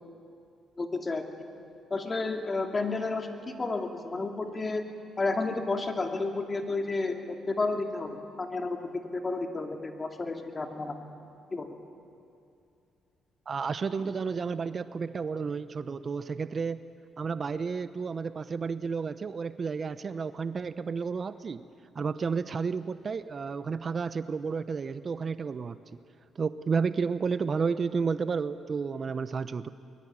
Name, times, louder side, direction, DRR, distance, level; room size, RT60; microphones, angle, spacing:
voice 1, 0.8-1.2 1.9-4.8 5.2-8.8 9.1-11.0 11.5-11.7, left 3 dB, 30° left, 4 dB, 2.6 m, -31 dB
voice 2, 13.5-16.8 17.2-21.6 21.9-25.8 26.4-29.7, right 5 dB, 40° right, 13 dB, 0.7 m, -31 dB
23.0 x 22.0 x 8.7 m, 2.5 s
cardioid pair, 90°, 0 cm